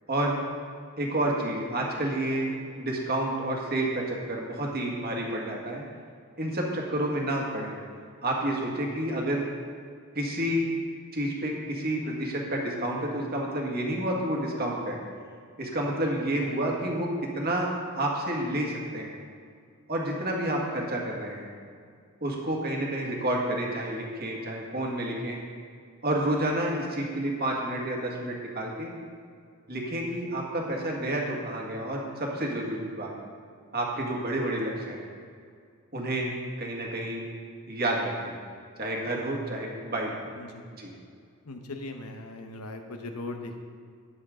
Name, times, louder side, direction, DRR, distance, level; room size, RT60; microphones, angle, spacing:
voice 1, 0.1-0.4 1.0-5.8 6.4-7.8 8.2-9.5 10.1-10.7 11.1-15.0 15.6-17.1 17.3-19.1 19.9-21.5 22.2-25.4 26.0-28.9 29.7-33.1 33.7-35.1 35.9-36.3 36.6-37.2 37.7-38.4 38.8-40.1 40.7-40.9, right 1 dB, 45° right, -1 dB, 1.8 m, -29 dB
voice 2, 41.4-43.6, left 2 dB, 90° left, 5 dB, 1.0 m, -39 dB
12.5 x 9.4 x 3.8 m, 2.2 s
head